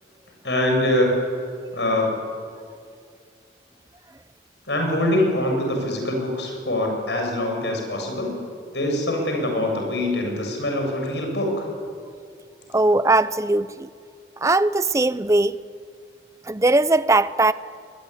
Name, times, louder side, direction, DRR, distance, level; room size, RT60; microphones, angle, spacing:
voice 1, 0.4-1.1 1.7-2.2 4.7-8.4 8.7-11.6, left 1 dB, 80° left, 7.8 m, -24 dB
voice 2, 12.7-13.9 14.4-15.6 16.5-17.5, right 2 dB, 15° right, 0.6 m, -19 dB
26.0 x 22.0 x 10.0 m
head